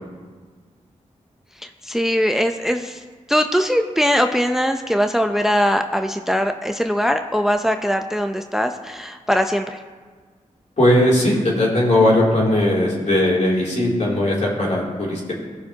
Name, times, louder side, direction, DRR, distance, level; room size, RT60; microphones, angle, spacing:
voice 1, 1.6-3.0 3.3-9.8, equal, 5° right, 6 dB, 0.6 m, -21 dB
voice 2, 10.8-15.3, left 1 dB, 55° left, -4 dB, 2.9 m, -18 dB
17.0 x 5.9 x 2.9 m, 1.5 s
cardioid pair, 40°, 14 cm